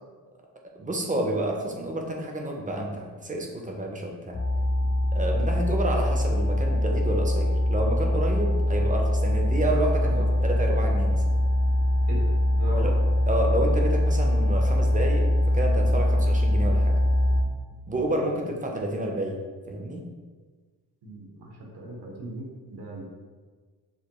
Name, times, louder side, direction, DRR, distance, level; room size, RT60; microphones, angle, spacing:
voice 1, 0.8-4.4 5.1-11.2 12.8-13.0 13.3-17.0 17.9-19.4 19.7-20.0, right 1 dB, 20° right, 1 dB, 0.5 m, -29 dB
sound 1, 4.3-17.4, left 1 dB, 45° left, 0.7 m, -23 dB
voice 2, 10.1-10.5 12.1-12.2 12.6-12.9 15.9-16.2 18.2-18.5 21.0-23.1, equal, 80° right, -2 dB, 1.2 m, -38 dB
6.6 x 2.3 x 2.9 m, 1.4 s
wide cardioid pair, 165°, 38 cm